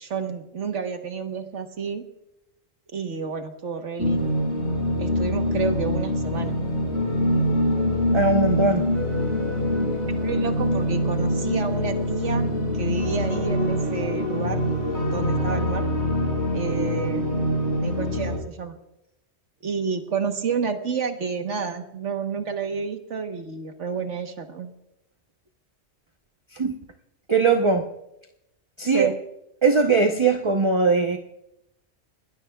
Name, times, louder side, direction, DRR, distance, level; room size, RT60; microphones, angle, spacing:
voice 1, 0.0-2.0 2.9-4.3 5.0-6.6 10.1-12.4 12.7-14.6 15.1-15.9 16.5-17.3 17.8-18.8 19.6-24.7 28.9-29.1, right 5 dB, 80° right, 5 dB, 1.6 m, -30 dB
sound 1, 4.0-18.4, left 1 dB, 70° left, 6.5 m, -24 dB
voice 2, 8.1-8.9 26.5-26.8 27.3-27.9 28.8-29.1 29.6-31.2, right 4 dB, 25° right, 4 dB, 0.9 m, -20 dB
29.5 x 20.0 x 2.4 m, 0.86 s
omnidirectional pair, 1.2 m